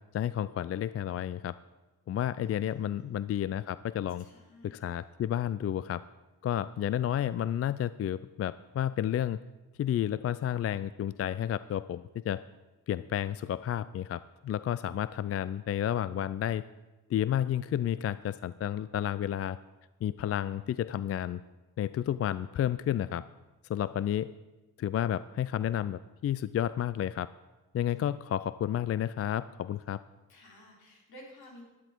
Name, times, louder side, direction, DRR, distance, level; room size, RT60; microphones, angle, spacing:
voice 1, 0.1-1.5 2.1-4.3 4.6-6.0 6.4-9.4 9.8-12.4 12.9-16.6 17.1-19.6 20.0-21.4 21.8-23.2 23.7-24.3 24.8-27.3 27.7-30.0, left 10 dB, 40° left, 16 dB, 0.4 m, -31 dB
voice 2, 2.3-3.2 4.2-4.9 30.3-31.6, equal, 75° left, -2 dB, 4.5 m, -53 dB
12.0 x 11.5 x 4.5 m, 1.1 s
cardioid pair, 75°, 38 cm